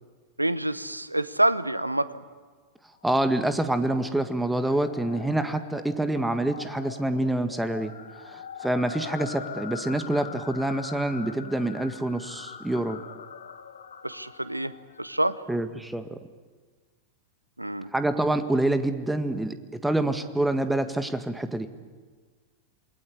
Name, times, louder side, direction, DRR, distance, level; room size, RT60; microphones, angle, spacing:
voice 1, 0.4-2.2 14.0-14.7 15.0-15.4 17.6-17.9, right 1 dB, 85° right, 16 dB, 0.9 m, -27 dB
sound 1, 3.0-15.4, left 7 dB, 70° left, 1.5 m, -43 dB
voice 2, 3.0-7.9 8.2-13.0 15.5-16.2 17.9-21.7, right 1 dB, 5° right, 9 dB, 1.8 m, -26 dB
28.0 x 21.0 x 9.9 m, 1.5 s
figure-of-eight pair, 90°, 0 cm